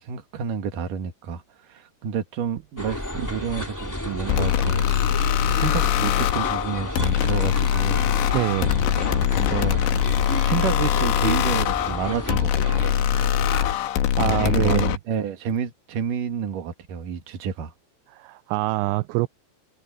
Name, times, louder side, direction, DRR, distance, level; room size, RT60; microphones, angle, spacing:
voice 1, 0.0-1.4 1.7-4.8 5.3-8.1 9.3-9.8 10.3-12.9 14.2-17.7, right 7 dB, 55° right, 3.2 m, -29 dB
sound 1, 2.8-13.7, left 1 dB, 5° left, 2.0 m, -32 dB
sound 2, 4.3-15.0, left 11 dB, 75° left, 3.6 m, -22 dB
voice 2, 8.3-8.7 14.2-15.0 18.1-19.3, right 21 dB, 85° right, 2.7 m, -24 dB
omnidirectional pair, 5.3 m